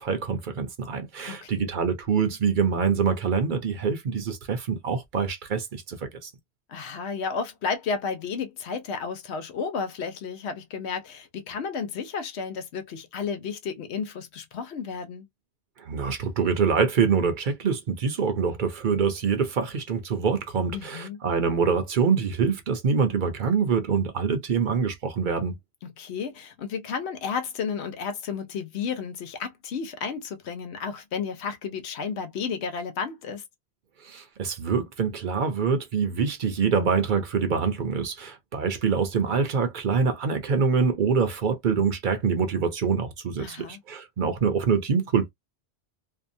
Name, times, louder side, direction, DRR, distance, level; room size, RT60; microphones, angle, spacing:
voice 1, 0.0-6.3 15.8-25.6 34.0-45.3, right 5 dB, 55° right, 0.8 m, -25 dB
voice 2, 1.3-1.7 6.7-15.3 20.7-21.2 25.8-33.4 43.4-43.8, left 6 dB, 85° left, 1.0 m, -32 dB
2.7 x 2.2 x 2.6 m
omnidirectional pair, 1.1 m